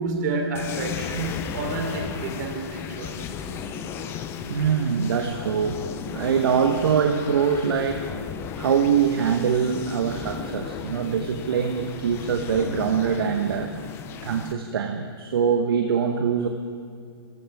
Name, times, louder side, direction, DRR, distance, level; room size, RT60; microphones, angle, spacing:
voice 1, 0.0-3.2, right 2 dB, 45° right, 2 dB, 3.5 m, -29 dB
sound 1, 0.5-14.5, left 7 dB, 20° left, 0.7 m, -35 dB
voice 2, 4.5-5.8 6.1-8.0 8.6-13.7 14.2-16.5, right 7 dB, 60° right, 5 dB, 1.2 m, -23 dB
25.5 x 15.5 x 3.6 m, 2.4 s
hypercardioid pair, 145°, 13 cm